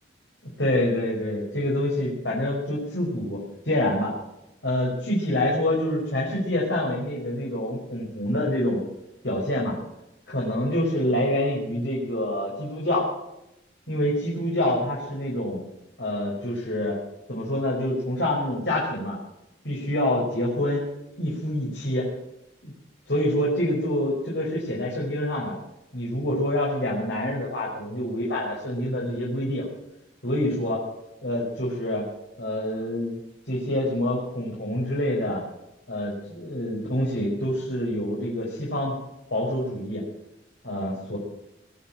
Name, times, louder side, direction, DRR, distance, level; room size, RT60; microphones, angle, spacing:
voice 1, 0.6-3.4 3.6-4.1 4.6-8.8 9.2-9.8 10.3-13.1 13.9-15.6 16.0-17.0 17.3-19.2 19.6-20.8 21.2-22.1 22.6-22.7 23.1-25.5 25.9-29.7 30.2-30.8 31.2-32.0 32.4-33.2 33.5-35.4 35.9-38.9 39.3-40.0 40.6-41.2, left 1 dB, 70° left, -5 dB, 5.0 m, -26 dB
20.0 x 9.3 x 7.7 m, 0.88 s
head